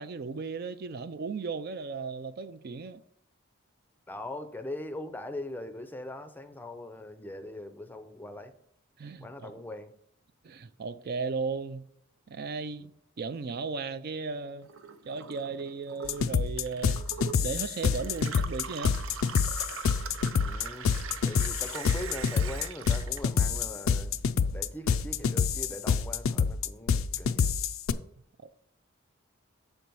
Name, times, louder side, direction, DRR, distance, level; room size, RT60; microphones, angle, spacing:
voice 1, 0.0-3.0 9.0-9.6 10.4-11.9 12.3-14.7 15.0-17.0 17.4-19.0 28.4-28.5, right 4 dB, 50° right, 0.4 m, -36 dB
voice 2, 4.1-8.5 9.2-9.9 20.4-21.0 21.2-24.1 24.5-27.5, left 1 dB, 10° left, 0.5 m, -41 dB
Gurgling / Water tap faucet / Sink (filling or washing), 14.6-24.1 24.5-25.3, right 6 dB, 90° right, 0.7 m, -42 dB
sound 1, 16.1-27.9, left 6 dB, 80° left, 0.4 m, -27 dB
7.3 x 4.5 x 5.4 m
head